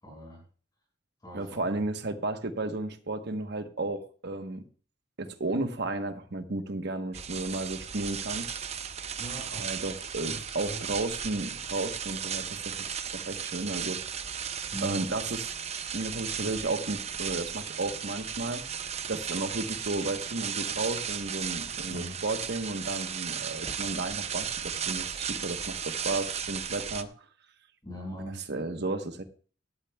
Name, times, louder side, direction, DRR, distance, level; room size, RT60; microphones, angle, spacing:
voice 1, 0.0-0.4 1.2-1.8 9.2-11.1 14.7-15.0 21.9-22.2 27.8-28.4, equal, 20° left, -4 dB, 5.9 m, -42 dB
voice 2, 1.3-4.6 5.2-8.5 9.6-14.0 14.8-15.4 15.9-18.6 19.1-27.1 28.5-29.2, right 2 dB, 60° right, 8 dB, 1.1 m, -33 dB
sound 1, 7.1-27.0, right 7 dB, 35° right, 0.6 m, -35 dB
17.5 x 12.0 x 2.3 m, 0.41 s
head